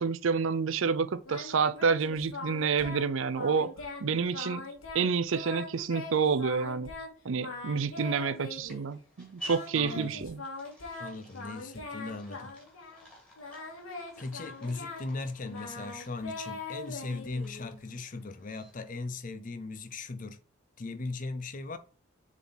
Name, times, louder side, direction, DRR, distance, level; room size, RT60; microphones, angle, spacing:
voice 1, 0.0-3.7 4.0-4.6 4.9-6.9 7.2-10.4, right 5 dB, 70° right, 0.5 m, -29 dB
Singing, 1.2-3.1 3.3-4.1 4.3-7.1 7.4-8.9 9.5-13.1 13.4-17.8, left 3 dB, 85° left, 1.9 m, -42 dB
sound 1, 7.8-19.1, right 1 dB, 5° left, 2.1 m, -51 dB
voice 2, 9.7-10.2 11.0-12.5 14.2-20.4 20.8-21.8, left 3 dB, 40° left, 0.6 m, -38 dB
7.2 x 3.8 x 4.0 m
head